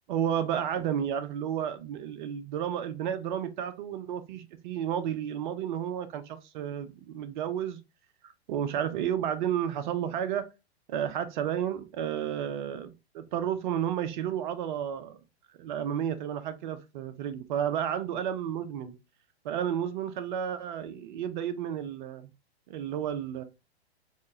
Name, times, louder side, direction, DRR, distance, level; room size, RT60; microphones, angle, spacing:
voice 1, 0.1-7.8 8.2-10.4 10.9-15.2 15.6-19.0 19.4-22.3 22.7-23.4, right 9 dB, 45° right, 0.6 m, -32 dB
3.6 x 2.2 x 2.6 m
hypercardioid pair, 125°, 32 cm